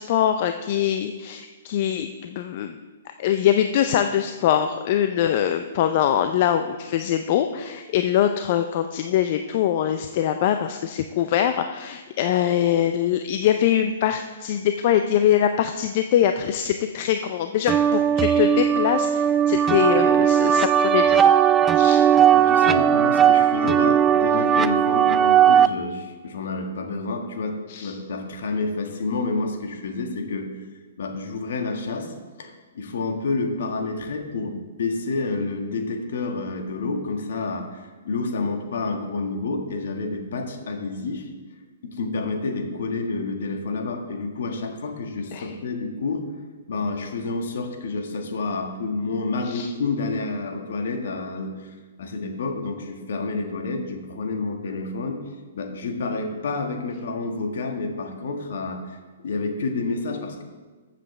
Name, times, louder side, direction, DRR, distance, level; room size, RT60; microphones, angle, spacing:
voice 1, 0.0-2.8 3.2-21.4 21.8-22.0 27.7-27.9 45.3-45.5 49.5-49.7, left 10 dB, 50° left, 8 dB, 0.5 m, -23 dB
sound 1, 17.7-25.7, right 9 dB, 15° right, 0.4 m, -18 dB
voice 2, 22.3-30.5 31.0-41.3 41.8-46.2 46.7-55.2 55.5-59.0 59.2-60.4, left 3 dB, 65° left, 4 dB, 1.6 m, -29 dB
14.0 x 7.5 x 3.3 m, 1.3 s
hypercardioid pair, 135°, 0 cm